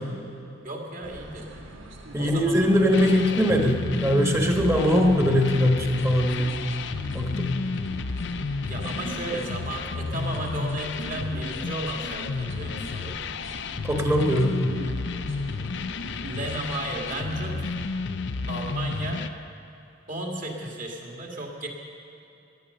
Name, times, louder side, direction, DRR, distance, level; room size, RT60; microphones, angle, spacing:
voice 1, 0.6-1.5 2.2-3.8 4.4-4.9 8.6-13.2 16.2-17.7 18.5-19.3 20.1-21.7, right 1 dB, 40° right, 0 dB, 2.1 m, -34 dB
sound 1, 1.0-18.0, right 1 dB, 80° right, 1.7 m, -42 dB
voice 2, 2.1-6.6 7.1-7.6 13.8-14.6, equal, 15° right, 2 dB, 1.3 m, -21 dB
sound 2, 2.9-19.3, left 4 dB, 60° left, 0.5 m, -32 dB
17.5 x 10.5 x 6.6 m, 2.9 s
head